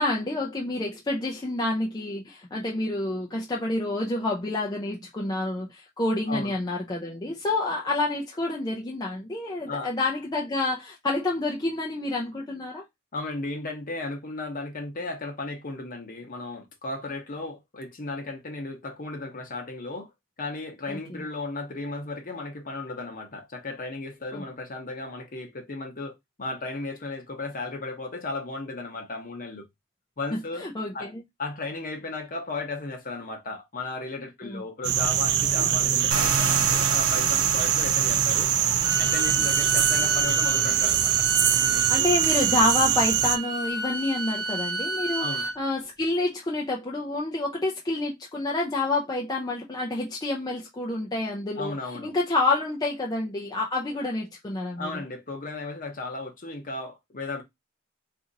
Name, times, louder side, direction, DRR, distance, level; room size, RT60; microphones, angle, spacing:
voice 1, 0.0-12.8 20.9-21.2 24.3-24.4 30.3-31.2 34.4-34.6 39.4-39.5 41.9-51.8 52.0-54.9, left 2 dB, 20° left, 0.5 m, -28 dB
voice 2, 13.1-20.1 20.4-29.7 30.2-30.6 30.9-31.1 31.4-38.5 39.0-41.3 42.0-42.2 45.2-45.5 51.5-52.1 54.8-57.4, left 3 dB, 40° left, 0.9 m, -35 dB
sound 1, 34.8-43.4, right 10 dB, 55° right, 0.3 m, -23 dB
sound 2, 36.1-41.6, right 5 dB, 85° right, 0.7 m, -33 dB
Bowed string instrument, 38.8-45.6, right 2 dB, 20° right, 0.7 m, -31 dB
2.8 x 2.6 x 3.9 m
head